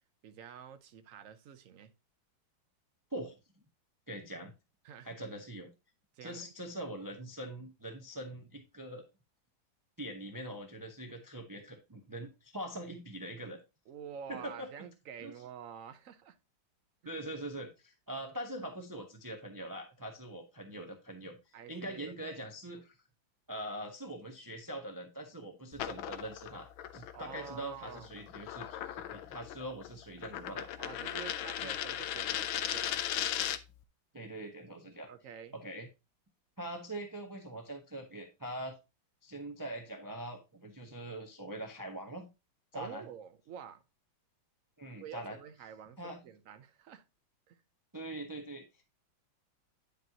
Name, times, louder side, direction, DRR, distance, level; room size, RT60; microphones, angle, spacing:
voice 1, 0.2-1.9 4.8-5.1 6.1-6.5 13.9-16.4 17.0-17.2 21.5-22.5 27.1-28.1 30.8-33.0 35.1-35.6 42.7-43.8 45.0-47.0 47.5-47.6, right 8 dB, 60° right, 0.9 m, -48 dB
voice 2, 4.1-4.5 5.0-5.7 6.2-9.0 10.0-13.6 14.3-14.7 15.2-15.3 17.0-21.4 21.7-23.0 23.5-30.7 31.6-31.7 34.1-35.1 35.5-35.9 36.6-38.8 39.2-42.3 42.7-43.0 44.8-45.4 46.0-46.2 47.9-48.8, right 1 dB, 30° right, 0.4 m, -43 dB
sound 1, 25.7-33.8, left 11 dB, 80° left, 1.4 m, -38 dB
9.4 x 5.2 x 2.8 m
omnidirectional pair, 2.2 m